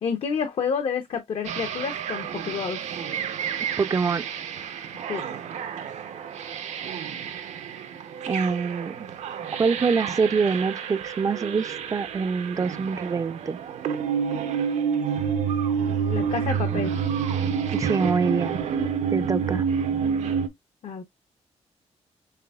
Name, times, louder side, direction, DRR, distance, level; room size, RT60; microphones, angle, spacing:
voice 1, 0.0-3.0 5.1-5.4 16.0-16.9 20.8-21.0, left 6 dB, 60° left, 0.7 m, -29 dB
sound 1, 1.4-20.5, right 7 dB, 85° right, 0.7 m, -29 dB
voice 2, 3.8-4.2 8.3-9.1 9.6-13.6 17.7-18.6 19.1-19.6, right 5 dB, 30° right, 0.4 m, -25 dB
5.8 x 3.4 x 2.3 m
wide cardioid pair, 160°, 12 cm